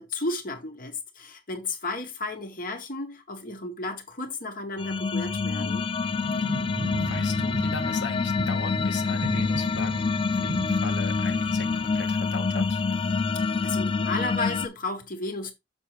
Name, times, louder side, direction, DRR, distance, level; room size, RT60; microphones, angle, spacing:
voice 1, 0.0-5.9 13.6-15.5, left 2 dB, 50° left, 1.8 m, -33 dB
sound 1, 4.8-14.7, left 4 dB, 30° left, 0.3 m, -26 dB
sound 2, 6.1-12.0, right 2 dB, 65° right, 0.8 m, -37 dB
voice 2, 7.0-10.0 10.4-12.8, left 4 dB, 75° left, 1.3 m, -38 dB
6.8 x 6.1 x 3.4 m
head